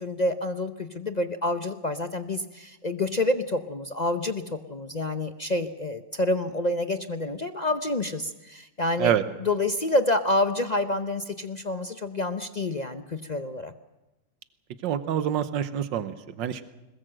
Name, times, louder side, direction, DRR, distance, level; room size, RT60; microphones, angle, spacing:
voice 1, 0.0-9.1 9.4-13.7, left 2 dB, 50° left, 9 dB, 0.4 m, -28 dB
voice 2, 14.8-16.6, right 10 dB, 80° right, 12 dB, 1.7 m, -26 dB
21.5 x 20.5 x 7.8 m, 1.0 s
omnidirectional pair, 2.0 m